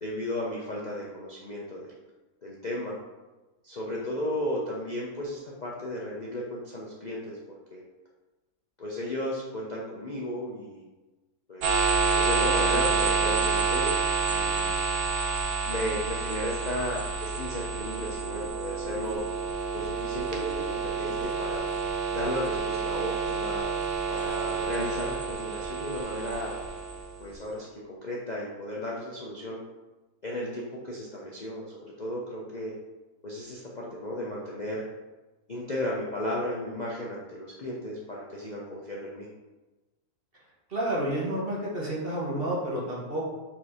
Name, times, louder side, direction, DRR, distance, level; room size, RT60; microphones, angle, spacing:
voice 1, 0.0-2.0 2.4-2.9 3.6-7.4 7.7-7.8 8.8-10.8 11.5-11.8 12.1-14.0 14.2-14.8 15.6-19.2 19.7-21.7 22.1-23.7 24.1-26.6 27.2-29.6 30.2-32.7 33.2-34.8 35.5-39.3, left 1 dB, 40° left, -5 dB, 0.7 m, -34 dB
sound 1, 11.6-27.3, right 5 dB, 70° right, 1.3 m, -28 dB
voice 2, 40.7-43.3, right 1 dB, 40° right, -4 dB, 1.5 m, -30 dB
4.5 x 4.3 x 4.9 m, 1.1 s
omnidirectional pair, 1.6 m